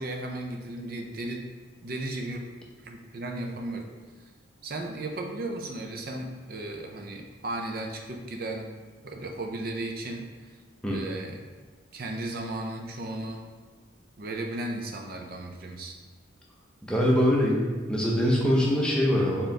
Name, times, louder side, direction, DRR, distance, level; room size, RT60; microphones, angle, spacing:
voice 1, 0.0-1.5 1.8-2.4 2.8-3.9 4.6-8.7 9.0-10.5 10.9-11.4 11.9-13.4 14.2-15.9, right 2 dB, 45° right, 3 dB, 0.5 m, -35 dB
voice 2, 16.8-19.5, equal, 5° left, -4 dB, 0.6 m, -23 dB
4.3 x 3.7 x 3.3 m, 1.4 s
head